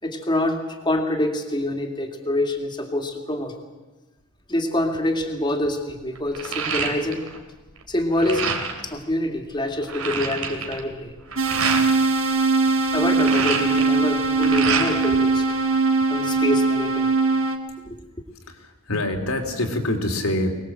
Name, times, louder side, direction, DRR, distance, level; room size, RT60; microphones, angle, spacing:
voice 1, 0.0-3.5 4.5-7.2 7.9-8.5 8.8-11.1 12.9-15.5 16.1-17.1 17.8-18.0, left 1 dB, 20° left, 4 dB, 2.5 m, -26 dB
sound 1, 4.9-5.2 5.6-7.4 7.7-8.9 9.4-9.5 9.6-11.9 12.9-15.2 15.5-16.4, right 5 dB, 90° right, 3.1 m, -28 dB
sound 2, 11.4-17.6, right 3 dB, 65° right, 1.9 m, -21 dB
voice 2, 18.5-20.5, left 1 dB, 80° left, 3 dB, 3.5 m, -25 dB
24.0 x 20.0 x 7.8 m, 1.1 s
head